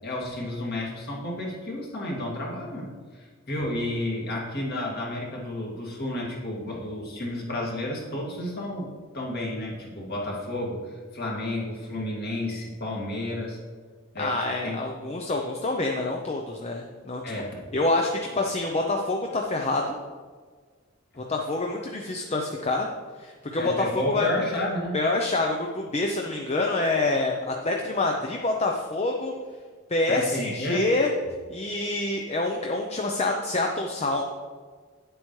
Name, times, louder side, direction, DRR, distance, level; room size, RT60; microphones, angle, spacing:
voice 1, 0.0-13.6 14.1-14.4 14.6-14.8 17.2-17.6 23.6-25.0 30.1-30.9, left 1 dB, 50° left, -3 dB, 2.1 m, -31 dB
voice 2, 14.2-17.2 17.7-20.0 21.2-22.9 23.2-24.5 24.9-29.3 29.9-31.1 31.5-34.2, left 2 dB, 30° left, 1 dB, 0.6 m, -26 dB
9.9 x 7.8 x 3.2 m, 1.5 s
head